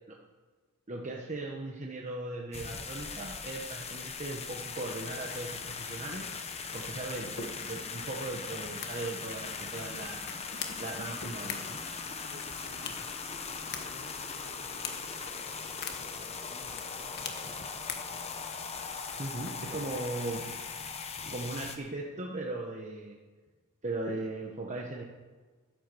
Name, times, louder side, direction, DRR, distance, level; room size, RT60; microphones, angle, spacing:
voice 1, 0.9-6.3 6.7-10.3 10.8-11.8 19.2-20.4 21.3-23.2 23.8-25.0, right 2 dB, 35° right, 0 dB, 1.1 m, -38 dB
sound 1, 2.5-21.8, left 5 dB, 30° left, 1.0 m, -40 dB
sound 2, 7.3-20.1, left 6 dB, 50° left, 1.4 m, -46 dB
voice 2, 12.2-13.0 13.7-17.5 19.7-20.1, equal, 60° right, 1 dB, 2.4 m, -55 dB
11.5 x 10.0 x 6.8 m, 1.4 s
head